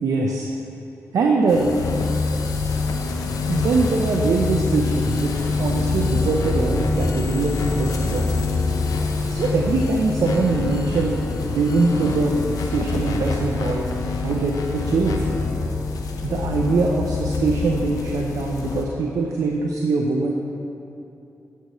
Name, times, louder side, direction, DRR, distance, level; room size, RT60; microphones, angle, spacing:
voice 1, 0.0-0.5 1.1-1.7 3.5-8.4 9.3-11.2 11.5-13.9 14.2-15.3 16.2-20.3, right 3 dB, 80° right, 1 dB, 0.6 m, -22 dB
sound 1, 1.5-18.8, left 4 dB, 85° left, 0.7 m, -25 dB
11.5 x 6.7 x 3.1 m, 2.8 s
cardioid pair, 55°, 6 cm